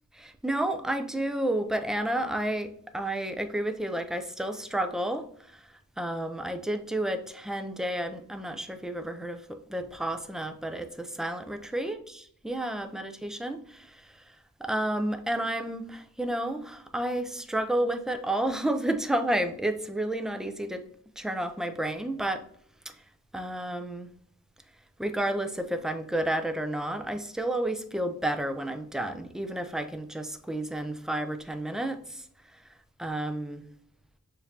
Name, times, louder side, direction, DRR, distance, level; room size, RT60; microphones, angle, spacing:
voice 1, 0.2-5.7 6.0-14.2 14.6-20.8 21.2-22.5 22.9-23.0 23.3-24.1 25.0-32.2 33.0-33.6, right 1 dB, ahead, 0.5 m, -31 dB
6.9 x 2.7 x 2.8 m
wide cardioid pair, 80°, 32 cm